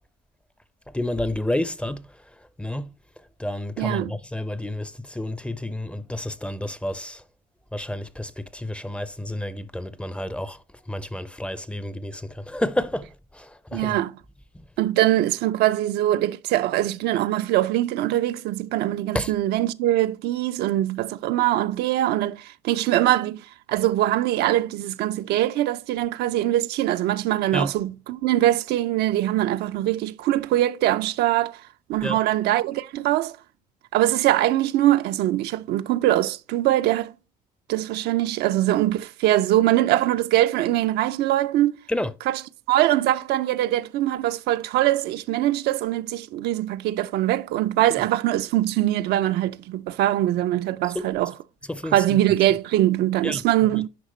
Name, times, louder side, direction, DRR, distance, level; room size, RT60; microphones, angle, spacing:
voice 1, 0.9-2.1 2.6-2.9 3.4-7.2 7.7-10.6 10.9-14.0 19.1-19.3 27.5-27.7 32.0-32.2 41.9-42.1 47.9-48.0 51.7-52.2 53.2-53.4 53.7-53.8, left 1 dB, 5° left, 0.5 m, -30 dB
voice 2, 3.8-4.2 13.7-14.1 14.8-31.6 31.9-33.4 33.9-37.1 37.7-41.8 42.3-42.4 42.7-51.3 51.9-53.9, right 14 dB, 75° right, 0.4 m, -22 dB
10.0 x 4.9 x 3.1 m
cardioid pair, 110°, 17 cm